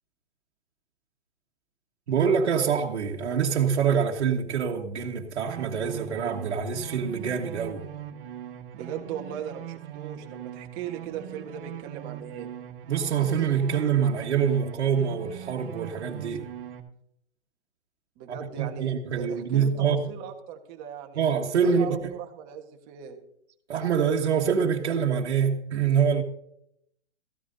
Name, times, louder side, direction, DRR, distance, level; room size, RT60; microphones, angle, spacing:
voice 1, 2.1-7.8 12.9-16.5 18.3-20.0 21.1-22.1 23.7-26.2, right 7 dB, 70° right, 1.5 m, -25 dB
sound 1, 5.5-16.8, right 11 dB, 50° right, 1.6 m, -41 dB
voice 2, 8.7-12.5 18.2-21.2 21.6-23.2, right 8 dB, 25° right, 1.4 m, -38 dB
14.5 x 13.0 x 2.7 m
hypercardioid pair, 150°, 34 cm